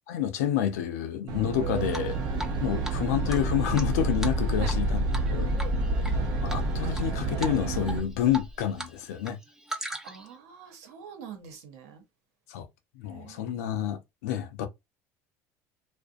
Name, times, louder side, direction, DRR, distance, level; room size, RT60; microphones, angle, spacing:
voice 1, 0.1-2.2 2.6-5.5 6.0-6.2 6.4-9.4 12.5-12.7 13.0-14.7, left 10 dB, 80° left, 0.5 m, -29 dB
Aircraft, 1.3-8.0, right 7 dB, 55° right, 0.7 m, -31 dB
Drip, 1.9-2.6 2.8-2.9 3.3-4.8 5.1-5.3 5.6-6.1 6.5-7.0 7.4-7.6 7.9-8.9 9.2-10.3, right 1 dB, 5° right, 0.6 m, -37 dB
sound 1, 2.1-8.6, left 4 dB, 25° left, 0.9 m, -32 dB
voice 2, 2.7-3.2 4.5-4.8 5.3-6.0 10.0-12.0 13.0-13.5, right 7 dB, 80° right, 0.9 m, -45 dB
2.5 x 2.1 x 2.4 m
hypercardioid pair, 85°, 8 cm